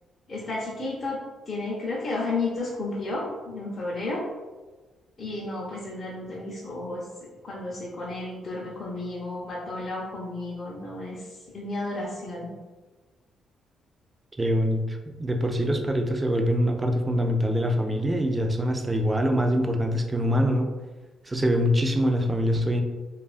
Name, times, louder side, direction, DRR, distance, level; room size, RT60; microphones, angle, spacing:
voice 1, 0.3-1.2 1.5-4.2 5.2-7.0 7.4-11.2 11.5-12.5, left 2 dB, 40° left, -6 dB, 0.6 m, -32 dB
voice 2, 14.4-20.7 21.2-22.8, equal, 20° right, 4 dB, 0.3 m, -24 dB
2.6 x 2.3 x 2.3 m, 1.3 s
cardioid pair, 90°, 0 cm